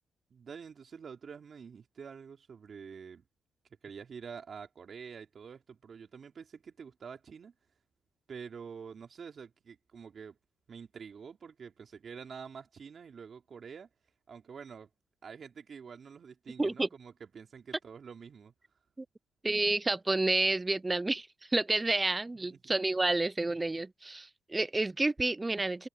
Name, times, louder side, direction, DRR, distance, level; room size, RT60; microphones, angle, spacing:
voice 1, 0.3-3.2 3.8-7.5 8.3-10.4 10.7-13.9 14.3-14.9 15.2-18.5 22.5-22.6, right 6 dB, 45° right, 3.1 m, -47 dB
voice 2, 16.6-16.9 19.0-19.1 19.4-25.9, right 2 dB, 15° right, 0.4 m, -30 dB
cardioid pair, 90°, 0 cm